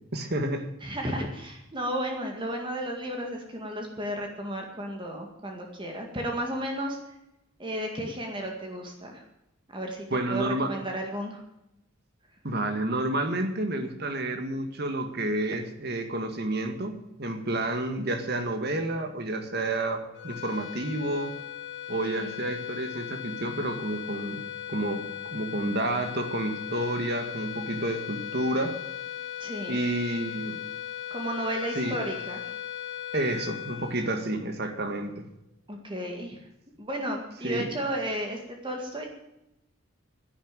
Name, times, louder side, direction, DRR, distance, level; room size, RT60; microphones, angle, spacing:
voice 1, 0.1-0.7 10.1-10.7 12.4-21.3 21.9-24.4 24.7-25.0 25.3-28.7 29.7-30.6 31.8-32.0 33.1-35.2 37.4-37.7, right 1 dB, 50° right, 7 dB, 2.0 m, -30 dB
voice 2, 0.8-7.0 7.6-9.2 9.7-11.4 22.2-22.4 29.4-29.8 31.1-32.5 35.7-36.4 36.8-39.1, right 1 dB, 25° right, 2 dB, 2.0 m, -33 dB
sound 1, 20.1-34.7, left 11 dB, 65° left, 2.4 m, -38 dB
11.5 x 10.5 x 9.0 m, 0.88 s
head